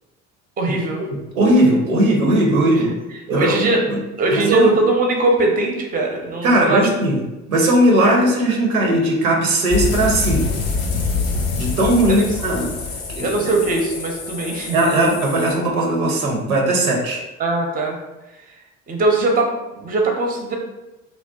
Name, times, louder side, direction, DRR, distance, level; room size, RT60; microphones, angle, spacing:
voice 1, 0.6-1.0 3.3-3.8 4.2-6.9 12.1-12.2 13.2-14.8 17.4-18.0 18.9-20.6, right 2 dB, 20° right, 2 dB, 0.5 m, -20 dB
voice 2, 1.3-2.9 3.3-4.0 4.3-4.7 6.4-7.2 7.5-10.4 11.6-12.7 13.1-13.3 14.7-17.2, right 1 dB, 90° right, 0 dB, 0.6 m, -18 dB
sound 1, 9.7-15.6, left 4 dB, 80° left, 0.6 m, -25 dB
2.6 x 2.1 x 2.3 m, 1.0 s
hypercardioid pair, 60°, 40 cm